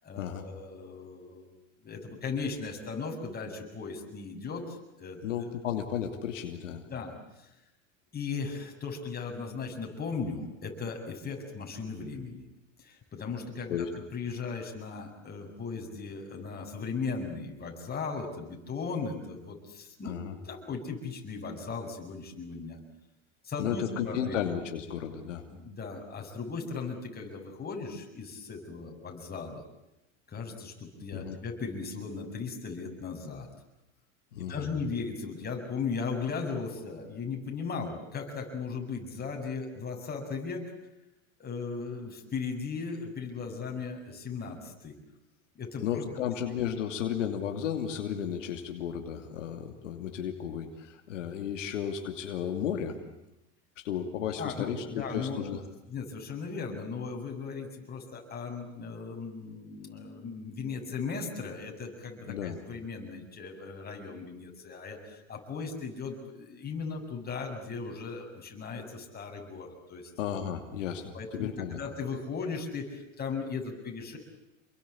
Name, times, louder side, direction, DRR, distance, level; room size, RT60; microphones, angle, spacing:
voice 1, 0.0-1.6 1.8-5.2 6.9-7.5 8.1-12.4 12.8-13.8 14.1-20.1 20.4-22.8 23.4-24.4 25.5-29.6 30.3-33.5 34.5-40.6 41.4-44.9 45.5-45.9 54.3-55.5 55.9-70.1 71.1-71.5 71.8-74.2, left 5 dB, 25° left, 2 dB, 7.8 m, -37 dB
voice 2, 5.2-6.8 13.7-13.9 20.0-20.4 23.6-25.4 31.1-31.4 34.3-34.6 45.8-53.0 53.8-55.6 62.3-62.6 70.2-71.8, left 8 dB, 85° left, 4 dB, 2.8 m, -33 dB
29.0 x 22.5 x 8.6 m, 0.92 s
hypercardioid pair, 100°, 36 cm